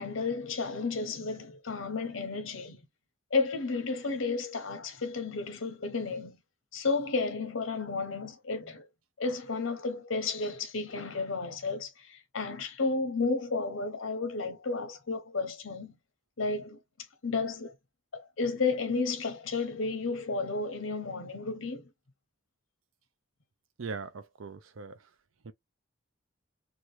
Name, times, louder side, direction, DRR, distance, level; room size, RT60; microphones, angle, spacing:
voice 1, 0.0-2.8 3.3-6.4 6.7-8.9 9.2-15.9 16.4-16.8 17.2-17.8 18.1-21.9, left 4 dB, 85° left, 0.9 m, -32 dB
voice 2, 23.8-25.0 25.4-25.5, right 4 dB, 90° right, 0.6 m, -40 dB
2.9 x 2.3 x 3.2 m
head